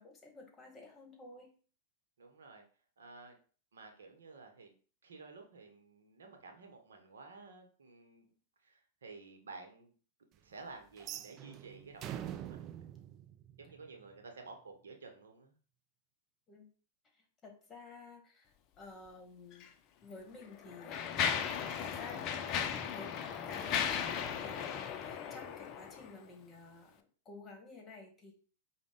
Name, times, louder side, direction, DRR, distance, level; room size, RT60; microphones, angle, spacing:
voice 1, 0.0-1.5 16.5-16.7 17.1-19.7 20.0-21.1 21.8-22.2 22.9-23.2 23.4-28.3, left 3 dB, 25° left, 2 dB, 1.3 m, -52 dB
voice 2, 2.2-2.7 3.0-3.4 3.7-4.7 5.0-8.3 8.6-9.9 10.4-12.7 13.6-15.6, right 4 dB, 75° right, 4 dB, 0.8 m, -52 dB
sound 1, 11.0-14.1, right 11 dB, 40° right, 0.3 m, -45 dB
Mechanisms, 19.5-19.7 20.4-26.2, left 7 dB, 40° left, 0.5 m, -36 dB
4.9 x 2.1 x 3.6 m, 0.40 s
hypercardioid pair, 100°, 0 cm